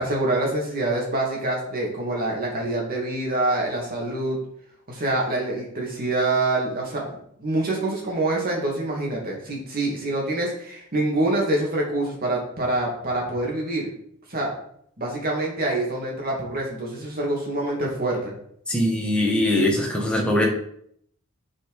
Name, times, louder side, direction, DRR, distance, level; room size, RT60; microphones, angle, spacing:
voice 1, 0.0-4.4 4.9-13.9 14.3-14.5 15.0-18.3, right 2 dB, 40° right, -2 dB, 2.7 m, -26 dB
voice 2, 18.7-20.5, left 1 dB, 5° left, -2 dB, 1.8 m, -21 dB
7.5 x 5.3 x 5.1 m, 0.67 s
head